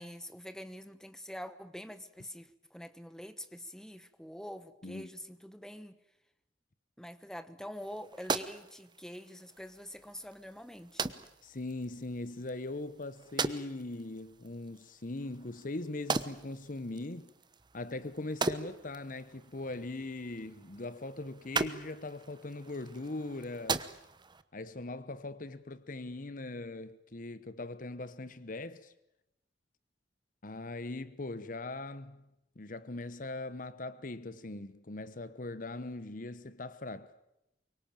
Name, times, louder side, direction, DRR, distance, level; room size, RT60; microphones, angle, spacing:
voice 1, 0.0-5.9 7.0-11.0, equal, 5° left, 1.1 m, -45 dB
sound 1, 7.8-24.4, right 4 dB, 25° right, 1.0 m, -40 dB
voice 2, 11.4-17.3 17.7-23.9 24.5-28.9 30.4-32.3 32.6-37.2, left 2 dB, 45° left, 1.0 m, -40 dB
24.5 x 23.0 x 9.0 m
head